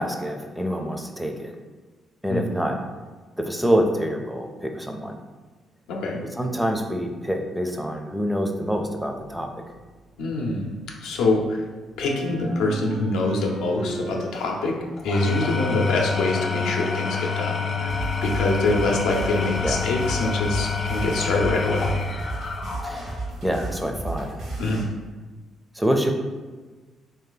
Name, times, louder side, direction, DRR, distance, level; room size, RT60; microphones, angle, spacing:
voice 1, 0.0-1.5 2.2-2.8 3.4-5.2 6.3-9.5 19.6-19.8 22.8-23.1 23.4-24.5 25.8-26.1, equal, 5° right, 3 dB, 0.4 m, -26 dB
voice 2, 2.3-2.6 5.9-6.2 10.2-10.7 11.0-11.6 12.0-14.7 15.0-21.9 24.6-24.9, left 2 dB, 90° left, -1 dB, 0.6 m, -25 dB
sound 1, 9.1-11.6 11.9-20.0, right 1 dB, 55° right, 0.6 m, -40 dB
Engine / Tools, 15.0-23.3, left 4 dB, 45° left, 0.6 m, -27 dB
sound 2, 17.9-24.8, right 2 dB, 70° right, 0.9 m, -33 dB
3.1 x 2.8 x 3.9 m, 1.3 s
cardioid pair, 90°, 0 cm